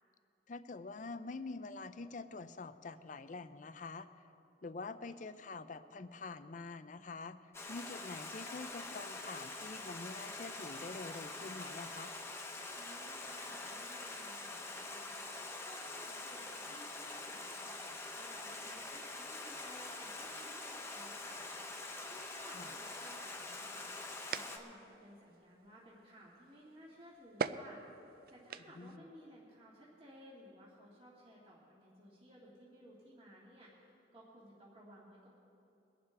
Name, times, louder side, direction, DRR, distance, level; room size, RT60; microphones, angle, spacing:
voice 1, 0.5-4.1 4.6-7.4 7.7-12.1 22.5-22.8 28.8-29.0, left 3 dB, 40° left, 11 dB, 0.5 m, -46 dB
Stream, 7.5-24.6, left 2 dB, 15° left, 0.9 m, -45 dB
voice 2, 12.8-17.8 18.2-21.6 22.1-27.8 28.3-33.7 34.1-35.3, equal, 30° right, -6 dB, 1.9 m, -57 dB
sound 1, 23.5-29.0, right 5 dB, 50° right, 0.4 m, -45 dB
22.0 x 11.5 x 3.4 m, 2.9 s
head